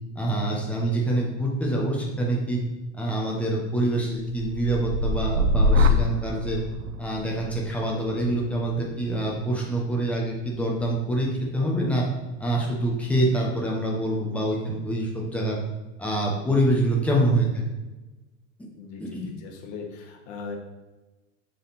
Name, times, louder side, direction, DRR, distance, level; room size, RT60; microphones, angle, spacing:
voice 1, 0.1-2.6 2.9-6.6 7.0-12.0 12.4-15.6 16.0-17.6 19.0-19.3, right 1 dB, 5° left, -3 dB, 1.1 m, -25 dB
sound 1, 4.3-12.2 12.6-13.1, left 2 dB, 80° right, 0.7 m, -27 dB
voice 2, 18.8-20.6, left 4 dB, 60° left, 1 dB, 1.4 m, -39 dB
7.3 x 4.1 x 4.3 m, 1.1 s
supercardioid pair, 160°, 36 cm